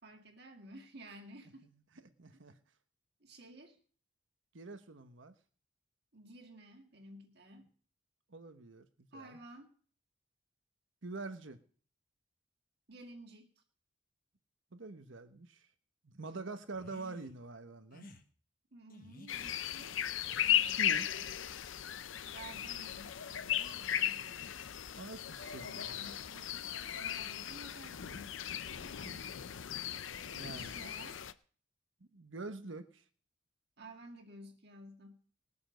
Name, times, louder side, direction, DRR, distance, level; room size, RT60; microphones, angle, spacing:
voice 1, 0.0-1.7 2.3-2.4 3.2-3.8 6.1-7.7 9.1-9.7 12.9-13.5 18.7-20.0 22.2-24.3 25.6-26.5 27.0-28.5 28.8-29.1 30.1-31.2 33.8-35.2, right 1 dB, 55° right, 3 dB, 2.2 m, -53 dB
voice 2, 2.2-2.5 4.5-5.3 8.3-9.4 11.0-11.6 14.7-15.7 16.0-18.1 20.7-21.1 24.9-26.2 26.7-26.9 29.0-29.2 30.3-30.7 32.0-33.0, right 3 dB, 75° right, 9 dB, 1.2 m, -46 dB
sound 1, 16.7-17.4 17.9-18.2 18.9-19.5 20.1-21.1 21.5-21.9 22.5-22.8 23.5-24.1, left 2 dB, 45° left, 1.3 m, -56 dB
sound 2, 19.3-31.3, left 10 dB, 75° left, 0.6 m, -36 dB
20.5 x 7.0 x 5.2 m, 0.43 s
head